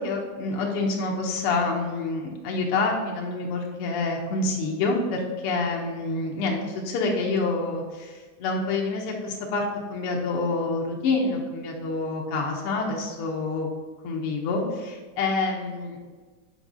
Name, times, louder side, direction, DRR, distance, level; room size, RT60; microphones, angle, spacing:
voice 1, 0.0-13.7 14.0-16.0, left 3 dB, 85° left, 0 dB, 1.2 m, -27 dB
5.3 x 4.1 x 6.0 m, 1.4 s
omnidirectional pair, 3.7 m